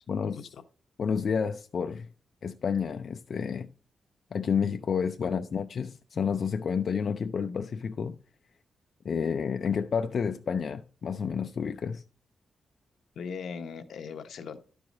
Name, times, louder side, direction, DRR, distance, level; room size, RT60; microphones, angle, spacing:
voice 1, 0.2-0.6 5.2-5.3 13.2-14.6, left 6 dB, 80° left, 0.8 m, -39 dB
voice 2, 1.0-2.1 2.4-3.7 4.3-8.2 9.0-12.0, left 6 dB, 55° left, 0.4 m, -30 dB
11.5 x 4.8 x 4.0 m
wide cardioid pair, 135°, 0 cm